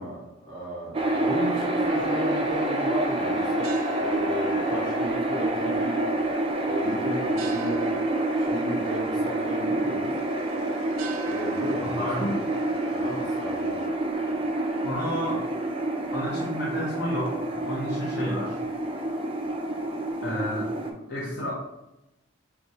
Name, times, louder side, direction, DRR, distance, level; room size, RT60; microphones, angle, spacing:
voice 1, 0.0-3.7 4.0-6.0 6.6-8.0 8.4-10.1 11.3-12.3 12.9-13.8, equal, 20° left, -7 dB, 1.4 m, -34 dB
sound 1, 0.9-20.9, right 1 dB, 25° right, 0.4 m, -28 dB
sound 2, 1.9-8.0, left 6 dB, 75° left, 0.5 m, -41 dB
sound 3, 3.1-13.9, right 7 dB, 85° right, 0.6 m, -47 dB
voice 2, 11.8-12.4 14.8-15.4 16.1-18.6 20.2-20.7 21.1-21.5, left 1 dB, 50° left, -5 dB, 0.9 m, -31 dB
5.9 x 2.4 x 2.9 m, 0.93 s
head